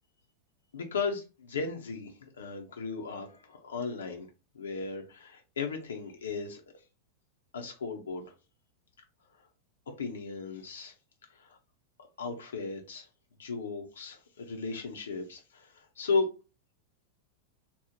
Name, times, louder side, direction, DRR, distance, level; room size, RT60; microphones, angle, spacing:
voice 1, 0.7-4.3 4.5-6.6 7.5-8.3 10.0-10.9 11.4-11.6 12.0-13.1 13.4-16.3, left 4 dB, 65° left, 0.5 m, -35 dB
2.9 x 2.0 x 3.7 m
figure-of-eight pair, 90°, 0 cm